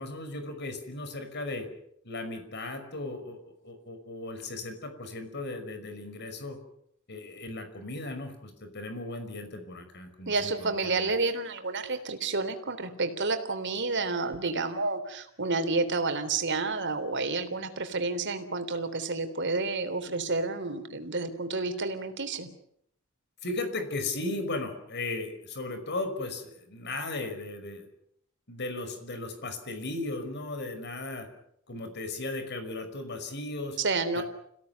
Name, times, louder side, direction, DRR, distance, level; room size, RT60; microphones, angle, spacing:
voice 1, 0.0-1.7 2.0-6.6 7.1-11.1 23.4-27.9 28.5-31.3 31.7-33.8 34.1-34.2, left 2 dB, 55° left, 8 dB, 5.5 m, -36 dB
voice 2, 10.3-22.5 33.8-34.2, right 3 dB, 60° right, 8 dB, 3.6 m, -30 dB
29.0 x 17.0 x 9.5 m, 0.73 s
head